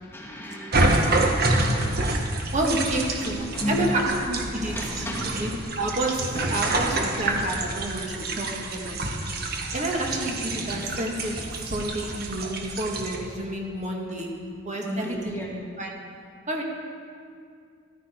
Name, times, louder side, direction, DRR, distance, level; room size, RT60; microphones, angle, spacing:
voice 1, 0.1-1.3 3.2-4.1 4.6-5.6 14.7-15.6, left 1 dB, 10° left, -3 dB, 1.7 m, -33 dB
sound 1, 0.7-13.2, right 2 dB, 55° right, 1.4 m, -27 dB
voice 2, 2.5-5.5 5.8-6.2 6.5-9.1 9.7-11.4 11.7-14.3 14.7-15.4 15.8-15.9 16.5-16.6, right 1 dB, 40° right, 0 dB, 1.8 m, -29 dB
14.5 x 12.0 x 4.5 m, 2.3 s
head